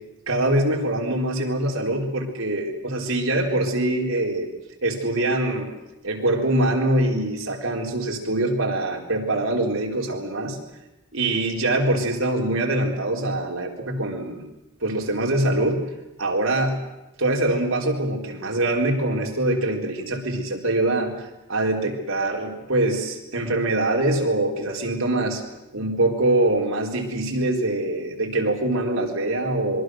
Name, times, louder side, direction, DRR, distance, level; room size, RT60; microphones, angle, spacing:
voice 1, 0.3-4.5 4.8-5.7 6.0-10.6 11.1-14.4 14.8-15.8 16.2-16.8 17.2-25.4 25.7-29.8, right 1 dB, 85° right, 1 dB, 4.3 m, -24 dB
26.5 x 23.0 x 6.5 m, 0.96 s
head